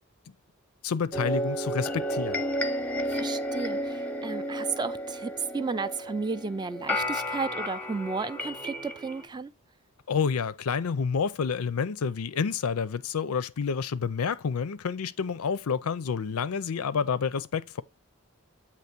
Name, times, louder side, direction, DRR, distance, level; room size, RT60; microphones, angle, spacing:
voice 1, 0.8-2.4 10.1-17.8, left 6 dB, 90° left, 0.5 m, -29 dB
sound 1, 1.1-9.3, equal, 5° left, 0.7 m, -32 dB
voice 2, 3.1-9.5, right 4 dB, 20° right, 0.3 m, -33 dB
8.1 x 3.0 x 5.9 m
head